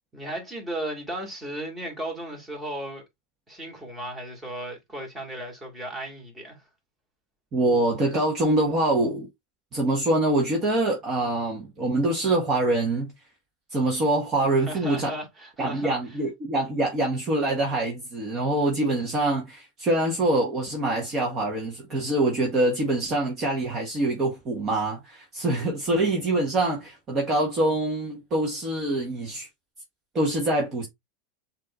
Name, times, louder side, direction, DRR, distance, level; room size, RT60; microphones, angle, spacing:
voice 1, 0.1-3.0 3.5-6.6 14.6-16.2, right 1 dB, 15° right, 2.5 m, -35 dB
voice 2, 7.5-9.3 9.7-13.1 13.7-15.1 15.6-29.5 30.1-30.9, right 2 dB, 30° right, 1.5 m, -25 dB
7.3 x 2.9 x 2.4 m
supercardioid pair, 130°, 0 cm